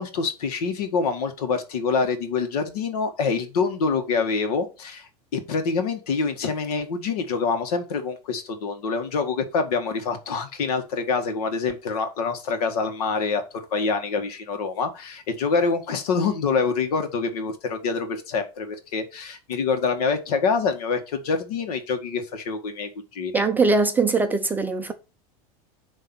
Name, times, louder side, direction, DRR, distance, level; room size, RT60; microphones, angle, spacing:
voice 1, 0.0-23.4, left 4 dB, 75° left, 1.8 m, -26 dB
voice 2, 23.3-24.9, right 3 dB, 10° right, 0.4 m, -21 dB
9.3 x 3.2 x 6.0 m
supercardioid pair, 160°, 20 cm